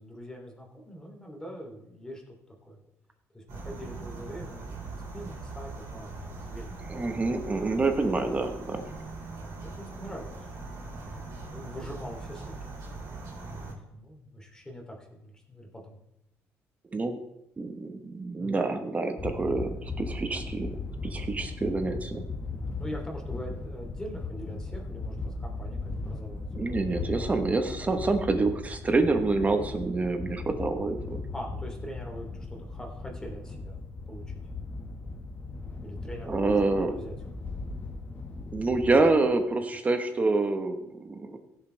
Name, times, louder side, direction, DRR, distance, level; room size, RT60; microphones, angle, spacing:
voice 1, 0.0-2.3 2.6-2.8 3.3-6.7 7.5-7.8 9.3-10.5 10.9-12.6 13.5-16.0 18.4-18.6 22.5-27.3 31.3-33.8 34.1-34.4 35.8-37.1 37.4-37.5, equal, 10° left, 0 dB, 3.0 m, -43 dB
sound 1, 3.5-13.7, right 3 dB, 75° right, 3.9 m, -41 dB
voice 2, 6.9-8.9 16.9-17.1 17.6-20.8 21.0-22.3 26.5-31.2 36.3-36.9 38.4-41.4, right 3 dB, 25° right, 7 dB, 1.2 m, -27 dB
sound 2, 19.2-39.0, left 3 dB, 30° left, 1.6 m, -37 dB
16.0 x 7.2 x 3.4 m, 0.84 s
cardioid pair, 95°, 5 cm